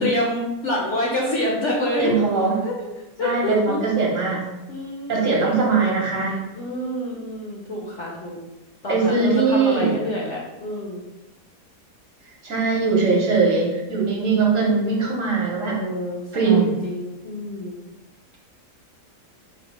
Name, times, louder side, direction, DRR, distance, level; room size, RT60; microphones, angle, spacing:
voice 1, 0.0-2.1 2.6-2.8 3.2-3.8 4.7-5.7 6.5-8.4 8.8-11.0 15.7-17.8, left 1 dB, 60° left, -3 dB, 0.8 m, -27 dB
voice 2, 2.0-2.6 3.2-4.5 5.1-6.4 8.9-9.9 12.4-15.8 16.3-16.8, right 4 dB, 55° right, -3 dB, 1.1 m, -21 dB
4.3 x 2.2 x 4.1 m, 1.0 s
omnidirectional pair, 1.8 m